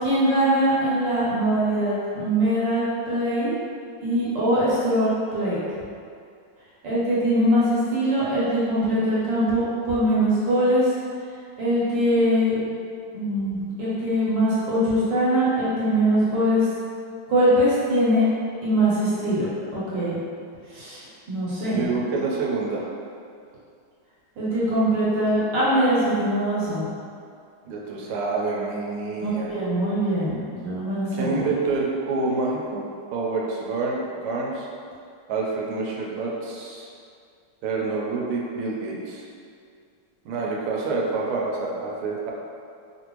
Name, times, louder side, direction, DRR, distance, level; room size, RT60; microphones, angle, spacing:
voice 1, 0.0-3.5 4.0-5.6 6.8-10.9 11.6-12.5 13.1-16.7 17.3-18.2 18.6-19.5 19.7-20.2 20.7-21.8 24.4-26.8 29.2-30.3 30.6-31.4, equal, 65° right, -9 dB, 1.4 m, -22 dB
voice 2, 21.7-22.9 27.6-29.5 31.1-32.8 33.1-34.7 35.3-36.9 37.6-39.2 40.2-42.3, right 3 dB, 90° right, -3 dB, 1.5 m, -27 dB
3.4 x 2.5 x 3.0 m, 2.3 s
omnidirectional pair, 2.4 m